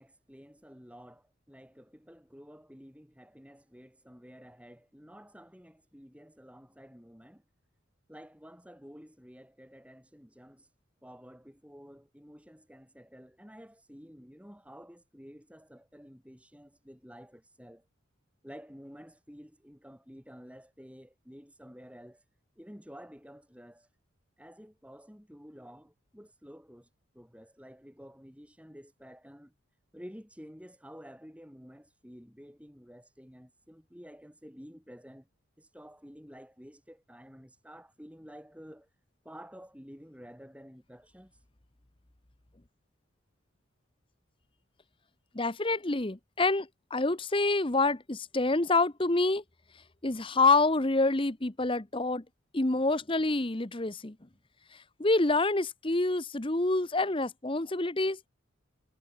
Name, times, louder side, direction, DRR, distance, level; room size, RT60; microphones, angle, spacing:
voice 1, 0.0-7.4 8.1-10.7 11.0-17.9 18.4-22.2 22.6-23.9 24.4-26.9 27.1-29.5 29.9-35.3 35.6-38.9 39.2-41.3, equal, 5° right, 7.8 m, -51 dB
voice 2, 45.3-49.4 50.0-52.2 52.5-54.2 54.7-58.2, left 3 dB, 25° left, 1.0 m, -27 dB
head